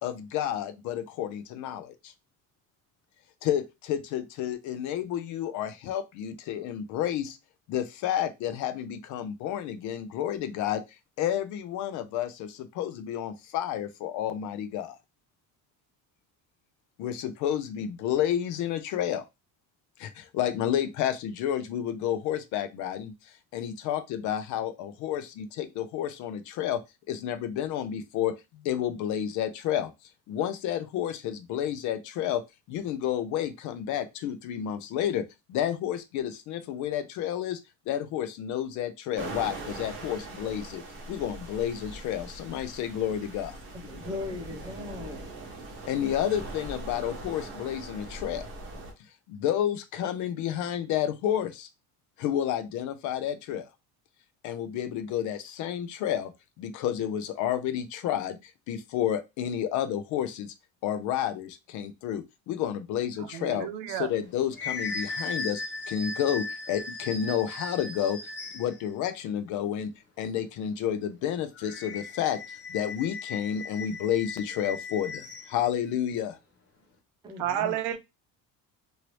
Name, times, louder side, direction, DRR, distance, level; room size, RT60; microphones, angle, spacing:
voice 1, 0.0-2.1 3.4-7.4 7.7-10.8 11.2-15.0 17.0-19.2 20.0-23.1 23.5-26.8 27.1-29.9 30.3-32.4 32.7-37.6 37.9-43.6 45.9-48.5 49.3-51.7 52.2-53.7 54.4-56.3 56.6-60.5 60.8-68.2 68.5-69.9 70.2-76.4, left 10 dB, 55° left, 0.4 m, -30 dB
sound 1, 39.1-48.9, right 2 dB, 30° right, 1.1 m, -41 dB
voice 2, 43.7-45.3 77.2-77.8, left 2 dB, 10° right, 0.5 m, -38 dB
voice 3, 63.2-64.1 77.4-78.0, right 11 dB, 75° right, 0.6 m, -31 dB
sound 2, 64.1-68.8 71.6-75.6, left 3 dB, 30° left, 0.9 m, -37 dB
3.0 x 2.7 x 3.0 m
cardioid pair, 170°, 37 cm